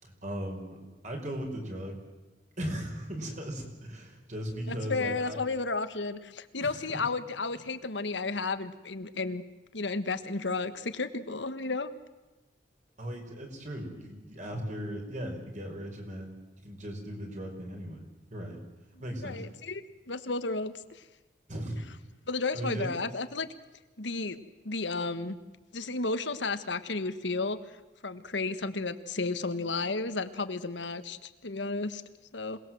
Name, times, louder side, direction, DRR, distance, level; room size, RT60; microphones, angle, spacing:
voice 1, 0.0-2.0 2.6-5.4 6.6-7.0 13.0-16.3 16.6-18.0 18.3-18.6 19.0-19.5 21.5-21.8 22.5-22.9, equal, 45° right, 2 dB, 5.5 m, -37 dB
voice 2, 4.7-9.4 9.7-11.9 19.2-19.8 20.1-21.0 22.3-23.5 24.0-24.4 24.6-25.4 25.7-27.6 28.0-32.0 32.3-32.6, left 3 dB, 85° left, 11 dB, 1.5 m, -33 dB
27.0 x 19.5 x 7.8 m, 1.1 s
head